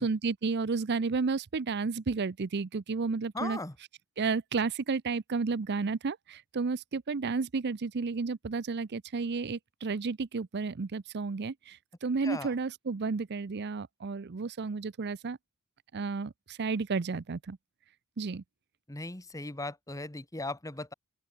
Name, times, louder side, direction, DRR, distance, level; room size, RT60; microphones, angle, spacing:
voice 1, 0.0-3.6 4.2-15.4 15.9-17.6 18.2-18.4, right 4 dB, 50° right, 0.6 m, -32 dB
voice 2, 3.3-3.8 12.2-12.5 18.9-20.9, left 2 dB, 15° left, 1.6 m, -38 dB
open air
head